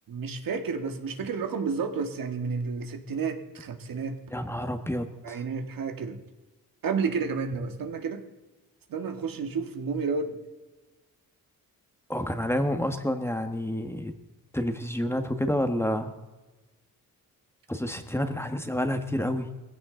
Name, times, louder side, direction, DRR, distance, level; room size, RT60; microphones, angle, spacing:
voice 1, 0.1-4.2 5.2-6.2 6.8-8.2 8.9-10.4, right 5 dB, 70° right, 6 dB, 1.8 m, -31 dB
voice 2, 4.3-5.4 12.1-14.1 14.5-16.1 17.7-19.5, left 1 dB, 5° left, 7 dB, 1.4 m, -29 dB
19.5 x 16.0 x 3.9 m, 1.2 s
cardioid pair, 95°, 35 cm